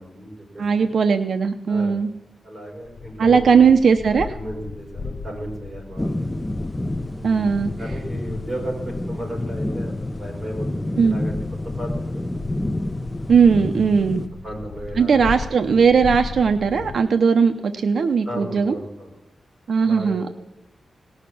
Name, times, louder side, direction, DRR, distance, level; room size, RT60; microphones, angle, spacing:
voice 1, 0.0-0.9 1.7-2.0 2.4-3.6 4.3-6.3 7.1-7.5 7.8-11.4 11.6-12.3 14.4-15.3 18.2-19.1 19.8-20.3, equal, 15° right, -3 dB, 5.5 m, -34 dB
voice 2, 0.6-2.1 3.2-4.4 7.2-7.7 11.0-11.2 13.3-14.2 15.0-18.8 19.7-20.3, right 6 dB, 65° right, 7 dB, 0.7 m, -18 dB
sound 1, 2.9-17.0, left 4 dB, 60° left, 0.6 m, -37 dB
sound 2, 6.0-14.3, left 1 dB, 15° left, 0.5 m, -29 dB
18.5 x 6.5 x 8.6 m, 0.97 s
wide cardioid pair, 160°, 0 cm